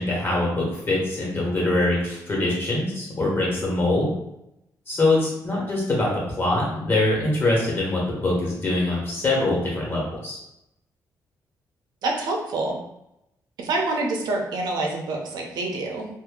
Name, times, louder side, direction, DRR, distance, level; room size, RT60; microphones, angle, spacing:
voice 1, 0.0-4.1 4.9-10.4, left 2 dB, 30° left, -4 dB, 1.3 m, -23 dB
voice 2, 12.0-12.8 13.6-16.1, right 2 dB, 80° right, 0 dB, 0.7 m, -26 dB
2.7 x 2.5 x 3.8 m, 0.84 s
cardioid pair, 125°, 7 cm